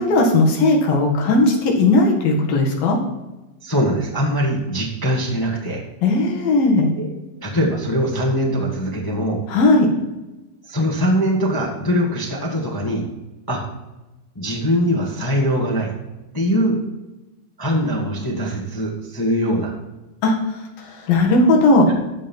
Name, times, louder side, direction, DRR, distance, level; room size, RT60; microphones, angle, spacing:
voice 1, 0.0-3.0 6.0-6.9 9.5-9.9 20.2-20.3 21.1-21.9, left 2 dB, 80° left, 0 dB, 3.6 m, -16 dB
voice 2, 3.6-5.8 7.0-7.1 7.4-9.4 10.7-13.0 13.5-13.6 14.3-15.9 16.3-16.8 17.6-19.7 21.9-22.0, equal, 30° left, -2 dB, 0.4 m, -22 dB
13.5 x 5.5 x 4.5 m, 1.1 s
omnidirectional pair, 4.0 m